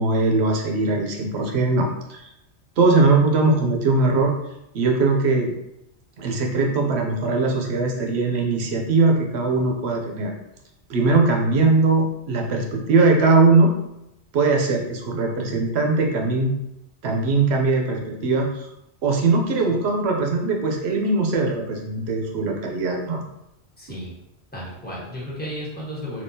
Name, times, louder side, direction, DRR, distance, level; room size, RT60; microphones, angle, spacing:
voice 1, 0.0-2.2 2.8-4.3 4.7-5.5 6.2-10.3 10.9-13.7 14.3-16.5 17.0-18.7 19.0-23.3, right 3 dB, 70° right, 1 dB, 0.9 m, -20 dB
voice 2, 23.8-24.1 24.5-26.2, equal, 10° left, -7 dB, 1.0 m, -33 dB
3.5 x 2.8 x 2.7 m, 0.87 s
omnidirectional pair, 1.2 m